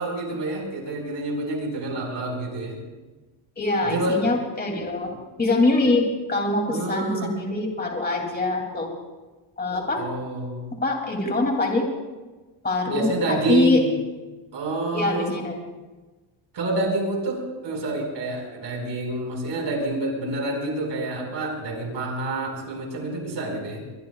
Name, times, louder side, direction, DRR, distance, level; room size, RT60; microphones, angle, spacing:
voice 1, 0.0-2.8 3.8-4.2 6.7-7.4 9.9-10.7 12.9-14.0 14.5-15.4 16.5-23.9, right 2 dB, 60° right, 1 dB, 5.3 m, -28 dB
voice 2, 3.6-5.1 5.4-6.0 6.3-8.9 9.6-10.0 10.8-11.8 12.6-13.8 14.9-15.6, left 2 dB, 20° left, 1 dB, 2.9 m, -23 dB
23.0 x 22.5 x 2.4 m, 1.2 s
cardioid pair, 150°, 49 cm